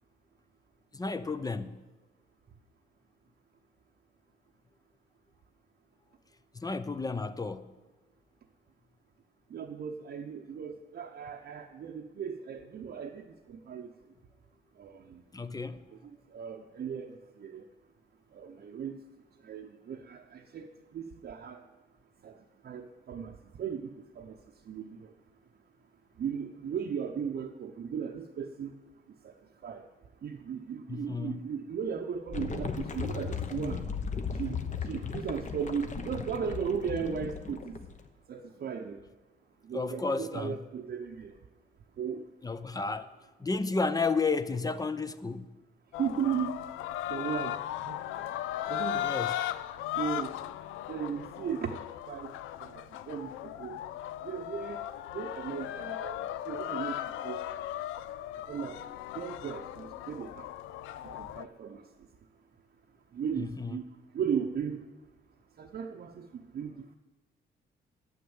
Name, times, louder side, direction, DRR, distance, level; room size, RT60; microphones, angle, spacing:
voice 1, 0.9-1.8 6.5-7.7 15.3-15.8 30.9-31.4 39.7-40.6 42.4-43.1 43.4-45.5 49.0-49.3 63.4-63.8, left 4 dB, 20° left, 0.6 m, -32 dB
voice 2, 9.5-13.9 14.8-15.2 16.3-17.6 18.3-19.0 19.4-21.6 22.2-22.3 22.6-24.4 24.7-25.1 26.2-28.7 29.2-29.3 29.6-29.8 30.2-33.8 34.3-37.8 38.3-39.0 39.6-41.4 42.0-42.2 46.0-46.5 47.1-48.0 48.7-49.1 50.0-50.4 50.9-52.3 52.6-53.8 54.2-54.8 55.1-57.4 58.5-58.8 59.1-60.5 61.0-61.8 63.1-63.8 64.1-64.8 65.6-66.9, right 7 dB, 55° right, 0.8 m, -36 dB
sound 1, 32.3-38.1, left 5 dB, 40° left, 1.0 m, -36 dB
sound 2, 45.9-61.4, left 12 dB, 90° left, 0.5 m, -37 dB
9.4 x 8.4 x 7.1 m
cardioid pair, 90°, 20 cm